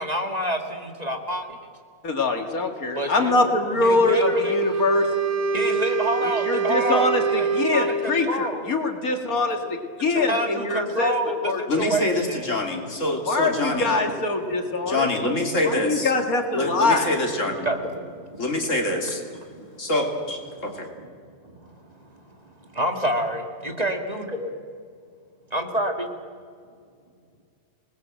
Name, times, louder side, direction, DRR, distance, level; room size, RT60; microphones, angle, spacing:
voice 1, 0.0-1.5 3.0-4.6 5.5-8.7 10.1-12.5 17.6-18.5 19.5-19.8 21.0-21.1 21.4-24.5 25.5-26.1, equal, 25° right, 4 dB, 2.0 m, -28 dB
voice 2, 2.0-5.1 6.5-9.6 10.0-11.1 11.4-11.6 13.3-15.1 15.6-17.1, left 2 dB, 80° left, 4 dB, 2.7 m, -23 dB
Wind instrument woodwind instrument, 4.0-8.3, right 5 dB, 85° right, 1.6 m, -26 dB
voice 3, 11.7-14.0 14.8-16.1 16.5-17.7 18.4-19.2 19.8-20.9, left 1 dB, 60° left, 2 dB, 3.4 m, -25 dB
26.0 x 19.5 x 7.8 m, 2.2 s
omnidirectional pair, 1.5 m